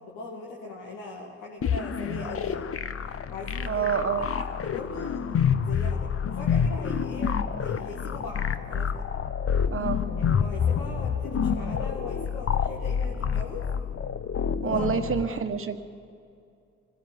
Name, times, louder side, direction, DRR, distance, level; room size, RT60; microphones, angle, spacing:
voice 1, 0.0-2.7 3.3-9.0 10.2-13.7 14.6-14.9, left 3 dB, 70° left, -3 dB, 2.1 m, -40 dB
sound 1, 1.6-15.2, left 7 dB, 40° left, 1.0 m, -28 dB
voice 2, 3.6-4.3 9.7-10.0 14.6-15.8, right 6 dB, 40° right, 8 dB, 1.3 m, -27 dB
25.5 x 16.0 x 7.9 m, 2.4 s
figure-of-eight pair, 40°, 34 cm